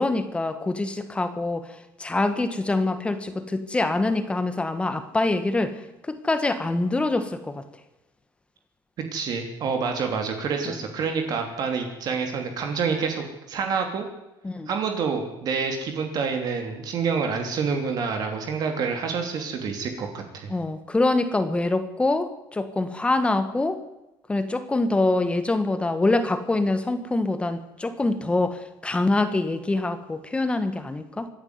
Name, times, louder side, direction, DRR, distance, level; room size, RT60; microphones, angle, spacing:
voice 1, 0.0-5.8 6.1-7.6 10.6-10.8 14.4-14.7 20.5-23.8 24.3-31.3, left 2 dB, 10° left, 10 dB, 1.6 m, -25 dB
voice 2, 9.1-14.1 14.7-20.5, right 5 dB, 50° right, 4 dB, 3.2 m, -27 dB
25.5 x 11.0 x 9.7 m, 0.97 s
cardioid pair, 140°, 9 cm